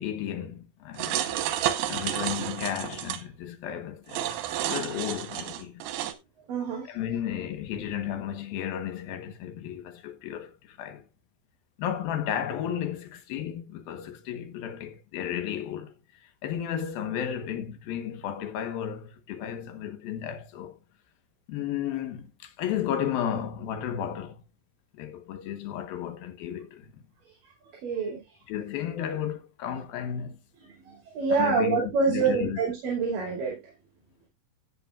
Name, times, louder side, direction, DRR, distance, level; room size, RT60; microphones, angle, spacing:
voice 1, 0.0-1.4 1.9-4.4 4.7-5.8 6.9-11.0 11.8-20.8 21.5-24.4 24.9-27.0 28.5-30.4 31.3-32.6, left 9 dB, 75° left, 3.0 m, -33 dB
sound 1, 1.0-3.2 4.1-6.1, right 11 dB, 85° right, 3.1 m, -30 dB
voice 2, 6.5-6.9 27.8-28.2 30.8-33.6, right 5 dB, 65° right, 4.1 m, -26 dB
14.0 x 9.0 x 2.4 m
omnidirectional pair, 4.3 m